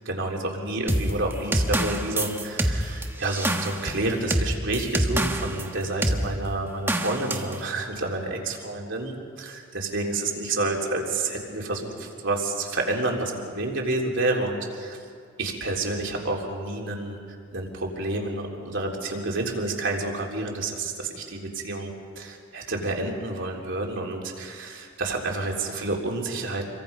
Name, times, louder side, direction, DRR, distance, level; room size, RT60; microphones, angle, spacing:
voice 1, 0.1-15.0 15.4-17.2 17.5-26.7, right 2 dB, 60° right, 0 dB, 3.6 m, -29 dB
sound 1, 0.9-5.7 6.0-6.2 6.9-7.5, right 1 dB, 10° right, 1.4 m, -25 dB
29.0 x 23.5 x 5.4 m, 2.3 s
head